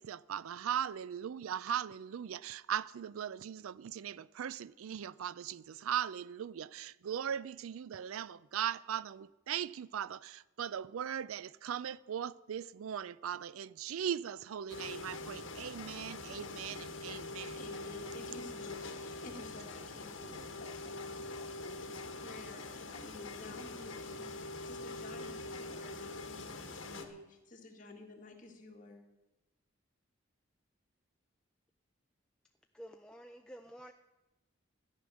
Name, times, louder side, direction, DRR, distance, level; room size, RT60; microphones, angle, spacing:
voice 1, 0.0-17.6, right 9 dB, 90° right, 0.4 m, -39 dB
sound 1, 14.7-27.1, left 2 dB, 65° left, 1.3 m, -44 dB
voice 2, 17.6-29.0, left 3 dB, 40° left, 1.8 m, -52 dB
voice 3, 32.7-33.9, equal, 5° left, 0.4 m, -50 dB
13.5 x 10.0 x 6.3 m
head